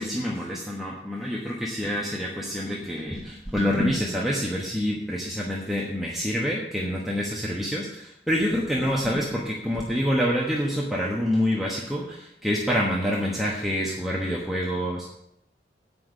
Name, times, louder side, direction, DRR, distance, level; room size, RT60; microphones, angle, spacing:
voice 1, 0.0-15.1, equal, ahead, -5 dB, 1.2 m, -27 dB
8.5 x 5.7 x 8.0 m, 0.78 s
head